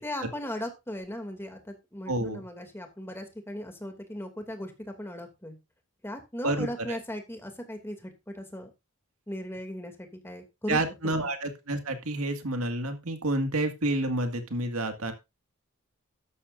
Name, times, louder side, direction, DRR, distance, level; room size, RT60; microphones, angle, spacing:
voice 1, 0.0-5.6 6.0-8.7 9.3-10.8 11.2-11.3, left 1 dB, 10° left, 4 dB, 2.6 m, -37 dB
voice 2, 2.1-2.4 6.4-7.0 10.7-15.1, right 2 dB, 75° right, 6 dB, 2.0 m, -29 dB
13.0 x 12.0 x 2.6 m, 0.24 s
head